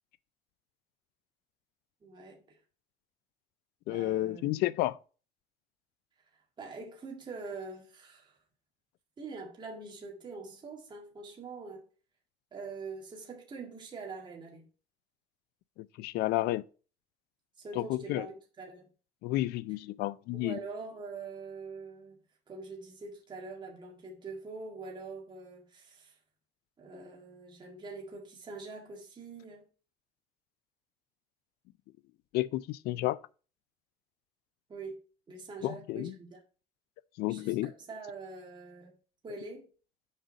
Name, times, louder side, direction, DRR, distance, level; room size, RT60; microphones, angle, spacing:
voice 1, 2.0-2.6 3.9-4.7 6.6-8.4 9.2-11.8 12.5-14.7 17.6-18.9 20.3-22.2 22.5-26.2 26.8-29.6 34.7-35.0 35.3-36.4 37.3-39.0 39.2-39.7, right 4 dB, 30° right, 2.0 m, -44 dB
voice 2, 3.9-5.0 16.0-16.6 17.8-18.3 19.2-20.6 32.3-33.2 35.6-36.1 37.2-37.7, left 17 dB, 90° left, 0.4 m, -31 dB
6.4 x 5.1 x 4.0 m
cardioid pair, 145°, 16 cm